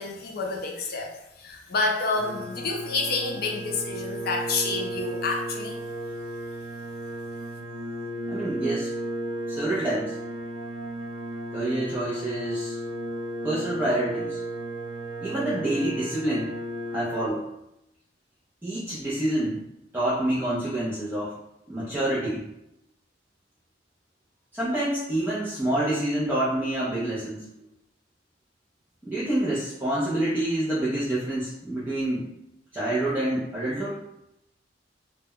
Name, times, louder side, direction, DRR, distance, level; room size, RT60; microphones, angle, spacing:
voice 1, 0.0-5.8, left 3 dB, 55° left, 0 dB, 0.5 m, -29 dB
sound 1, 2.1-17.3, right 1 dB, 75° right, 0.4 m, -34 dB
voice 2, 8.3-8.9 9.5-10.2 11.5-12.8 13.4-14.4 15.2-16.5 16.9-17.5 18.6-19.6 19.9-21.4 21.7-22.4 24.5-27.4 29.0-32.3 32.7-34.0, right 1 dB, 10° right, -9 dB, 0.4 m, -27 dB
2.1 x 2.0 x 3.6 m, 0.85 s
head